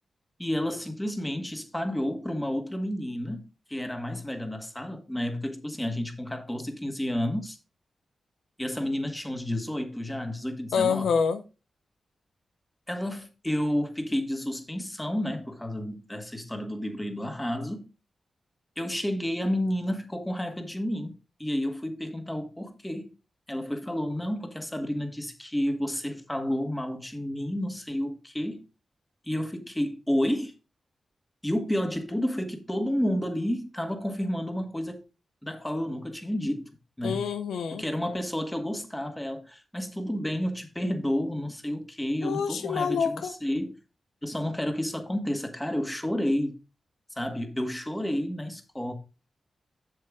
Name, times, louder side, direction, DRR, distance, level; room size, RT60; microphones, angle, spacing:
voice 1, 0.4-7.6 8.6-11.1 12.9-17.9 18.8-23.1 23.5-28.6 29.2-30.5 31.4-35.0 35.4-36.7 37.0-37.2 37.7-43.8 44.2-46.6 47.2-48.9, left 1 dB, 10° left, 1.8 m, -30 dB
voice 2, 10.7-11.4 37.0-37.8 42.2-43.3, left 6 dB, 90° left, 0.6 m, -26 dB
7.8 x 6.6 x 3.7 m
cardioid pair, 50°, 0 cm